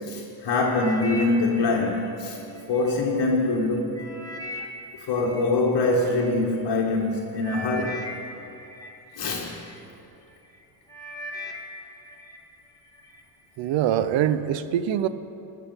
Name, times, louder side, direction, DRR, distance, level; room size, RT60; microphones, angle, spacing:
voice 1, 0.0-2.4 2.7-4.2 4.9-8.1 9.2-9.6, left 2 dB, 55° left, -3 dB, 1.5 m, -24 dB
sound 1, 0.6-2.9 3.4-6.3 7.0-7.1 7.4-9.8 10.3-10.6 10.9-12.4 12.8-13.2 13.8-13.9, left 1 dB, 10° left, 1.7 m, -39 dB
voice 2, 13.6-15.1, right 10 dB, 75° right, 13 dB, 0.7 m, -23 dB
16.5 x 6.1 x 5.5 m, 2.8 s
cardioid pair, 85°, 46 cm